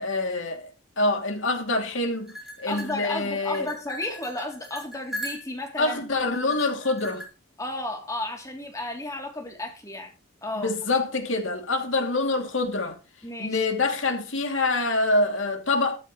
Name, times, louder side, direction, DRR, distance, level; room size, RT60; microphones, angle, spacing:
voice 1, 0.0-3.7 5.8-7.2 10.5-13.0 13.4-16.0, left 2 dB, 65° left, 2.8 m, -26 dB
sound 1, 2.3-5.8 6.3-7.2, equal, ahead, 3.9 m, -39 dB
voice 2, 2.7-6.6 7.6-10.1 10.4-10.7 13.2-13.6, left 1 dB, 15° left, 3.1 m, -33 dB
14.0 x 13.5 x 3.2 m
head